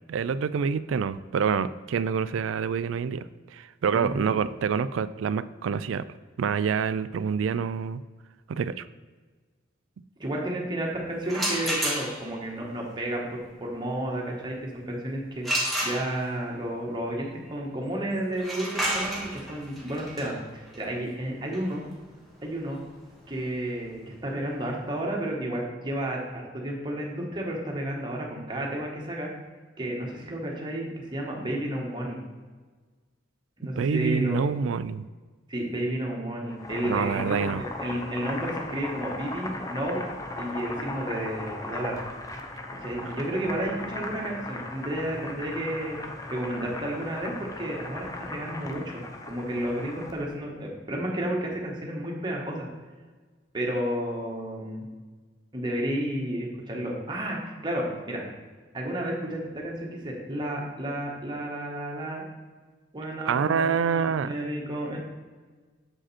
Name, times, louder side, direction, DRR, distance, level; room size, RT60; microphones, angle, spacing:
voice 1, 0.1-3.2 3.5-6.0 6.4-8.0 8.5-8.8 33.8-35.1 36.8-37.6 43.0-43.1 63.3-64.3, right 6 dB, 80° right, 15 dB, 0.3 m, -27 dB
voice 2, 3.9-4.3 10.2-21.9 22.4-22.8 23.3-29.3 29.8-32.2 33.6-34.4 35.5-40.0 40.4-42.0 42.8-46.0 46.3-52.7 53.5-54.8 55.5-58.2 58.7-62.2 62.9-65.0, right 1 dB, 25° right, -2 dB, 1.4 m, -32 dB
sound 1, 11.2-12.4 15.4-16.5 18.3-24.0, right 1 dB, ahead, 1.4 m, -31 dB
Boiling, 36.4-50.3, left 2 dB, 20° left, 0.7 m, -37 dB
7.4 x 5.0 x 4.2 m, 1.4 s
head